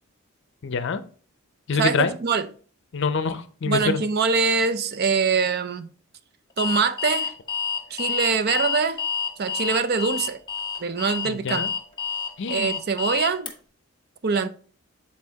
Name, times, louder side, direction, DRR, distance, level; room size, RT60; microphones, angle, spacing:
voice 1, 0.6-1.0 1.7-2.1 2.9-4.0 11.2-11.7 12.4-12.8, left 5 dB, 55° left, 0.5 m, -25 dB
voice 2, 1.8-2.5 3.6-5.9 6.6-7.3 7.9-9.0 9.4-10.4 10.8-11.6 12.5-13.5 14.2-14.5, right 5 dB, 45° right, 0.5 m, -23 dB
Alarm, 6.6-13.5, left 6 dB, 20° left, 1.0 m, -28 dB
8.3 x 4.2 x 2.8 m
head